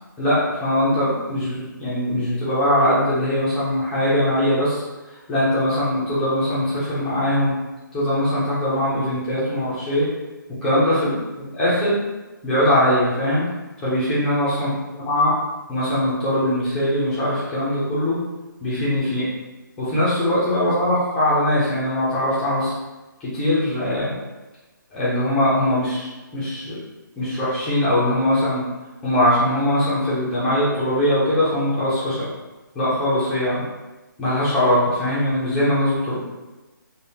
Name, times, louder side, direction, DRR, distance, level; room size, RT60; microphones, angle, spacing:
voice 1, 0.2-7.6 7.9-10.1 10.6-12.0 12.4-13.5 13.8-14.7 15.0-15.3 15.7-18.2 18.6-19.3 19.8-22.8 23.2-24.2 24.9-26.8 27.2-28.6 29.0-32.3 32.7-33.6 34.2-36.2, left 1 dB, 5° left, -10 dB, 0.3 m, -21 dB
3.3 x 2.0 x 2.7 m, 1.1 s
hypercardioid pair, 165°, 11 cm